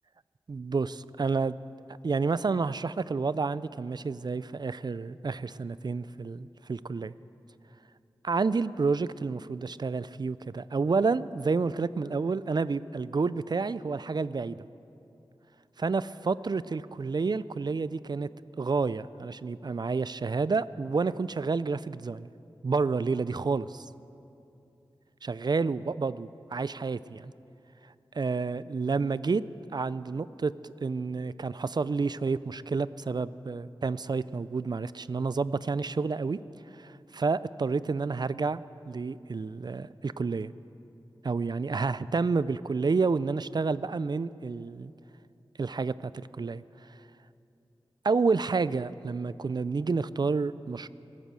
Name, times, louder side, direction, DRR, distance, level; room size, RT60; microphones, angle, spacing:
voice 1, 0.5-1.6 2.0-7.1 8.2-14.7 15.8-18.3 18.6-22.3 22.6-23.9 25.2-27.3 28.1-29.4 29.7-36.4 36.7-38.6 38.9-40.5 41.2-44.9 45.6-46.6 48.0-50.9, right 4 dB, 45° right, 17 dB, 0.4 m, -29 dB
18.0 x 8.3 x 7.5 m, 2.7 s
cardioid pair, 50°, 10 cm